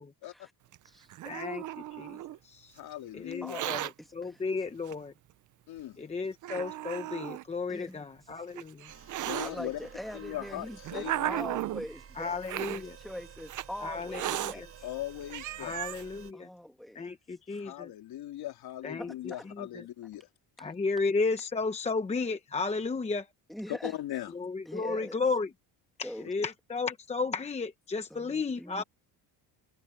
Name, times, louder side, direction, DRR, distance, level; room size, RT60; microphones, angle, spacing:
Hiss, 0.7-2.4 3.3-3.9 4.9-5.0 5.8-5.9 6.4-7.4 8.3-9.5 10.3-11.9 12.4-12.8 13.5-13.7 14.1-14.5 15.0-15.1 15.3-16.0, right 14 dB, 50° right, 0.6 m, -35 dB
voice 1, 1.2-1.6 1.9-2.2 2.4-2.8 3.1-5.1 6.0-8.9 11.3-11.5 12.2-13.0 13.8-14.7 15.6-16.5 16.9-17.9 18.8-19.1 19.5-19.8 20.6-23.3 24.3-25.5 26.0-28.8, left 4 dB, 15° left, 0.9 m, -33 dB
voice 2, 2.8-3.6 5.7-6.0 9.2-11.4 14.8-15.8 17.5-20.3 23.7-24.3, left 13 dB, 65° left, 3.3 m, -39 dB
voice 3, 3.4-4.4 7.7-8.1 9.4-12.4 12.7-14.9 16.3-17.1 19.0-19.4 23.5-24.0 24.7-25.2 26.0-26.3 28.1-28.8, equal, ahead, 2.1 m, -42 dB
sound 1, 8.9-16.3, right 7 dB, 35° right, 7.9 m, -51 dB
cardioid pair, 165°, 40 cm